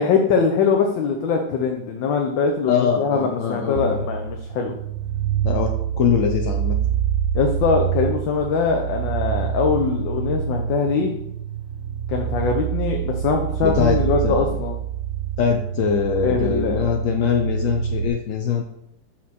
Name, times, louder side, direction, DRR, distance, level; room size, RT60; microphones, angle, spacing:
voice 1, 0.0-4.8 7.3-11.1 12.1-14.8 16.2-16.9, left 5 dB, 85° left, 2 dB, 1.5 m, -22 dB
voice 2, 2.7-4.0 5.4-5.7 5.9-6.8 13.6-14.0 14.2-14.5 15.4-18.6, left 7 dB, 65° left, 2 dB, 0.8 m, -22 dB
sound 1, 3.8-18.1, right 9 dB, 75° right, 1.2 m, -26 dB
6.6 x 5.9 x 4.1 m, 0.76 s
omnidirectional pair, 2.0 m